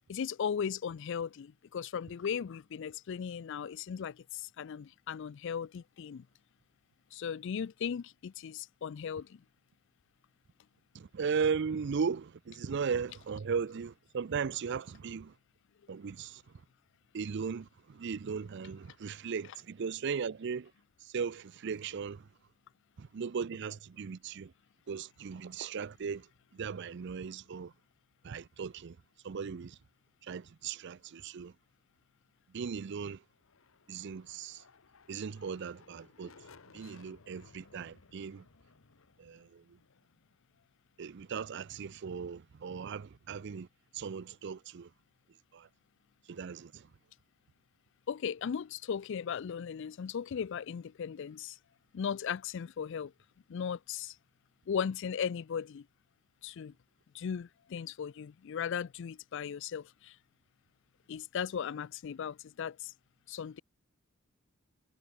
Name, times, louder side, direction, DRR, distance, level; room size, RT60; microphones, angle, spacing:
voice 1, 0.1-6.3 7.1-9.4 48.1-51.6 51.9-53.1 53.5-54.2 54.7-55.9 56.4-56.7 57.1-60.2 61.1-62.9 63.3-63.6, left 7 dB, 60° left, 0.4 m, -37 dB
voice 2, 10.9-15.3 15.9-16.4 17.1-20.7 21.0-22.3 23.0-24.5 24.9-26.3 26.5-27.7 28.2-29.0 29.2-29.8 30.2-31.5 32.5-33.2 33.9-34.6 35.1-36.3 36.7-38.5 39.2-39.8 41.0-43.7 43.9-44.9 45.5-45.7 46.3-46.9, right 6 dB, 60° right, 0.5 m, -37 dB
sound 1, 33.3-41.1, left 4 dB, 75° left, 1.1 m, -60 dB
head